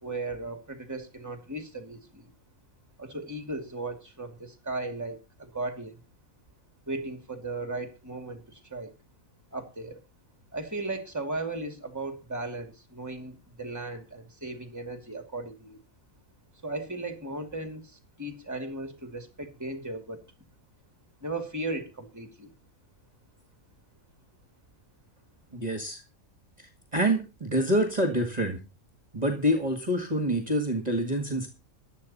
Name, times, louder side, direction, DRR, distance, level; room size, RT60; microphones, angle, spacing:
voice 1, 0.0-2.3 3.0-6.0 6.9-8.9 9.5-10.0 10.5-15.8 16.6-20.2 21.2-22.5, right 2 dB, 10° right, 7 dB, 2.5 m, -36 dB
voice 2, 25.5-26.0 26.6-28.6 29.1-31.5, equal, 30° right, 6 dB, 2.0 m, -27 dB
15.0 x 11.0 x 4.3 m, 0.29 s
omnidirectional pair, 1.5 m